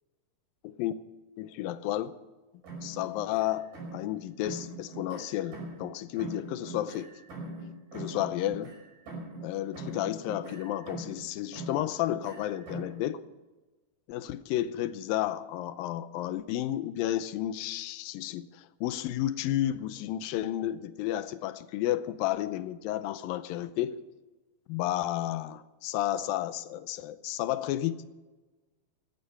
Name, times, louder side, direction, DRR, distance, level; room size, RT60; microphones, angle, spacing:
voice 1, 0.6-0.9 1.4-2.1 2.8-7.1 7.9-8.7 9.4-13.2 14.1-24.0 24.7-28.1, left 13 dB, 80° left, 2.4 m, -32 dB
sound 1, 2.6-4.1 4.4-5.9 6.2-9.5 9.7-11.2 11.5-13.0, right 2 dB, 70° right, 7.2 m, -42 dB
17.0 x 12.0 x 5.7 m
omnidirectional pair, 4.2 m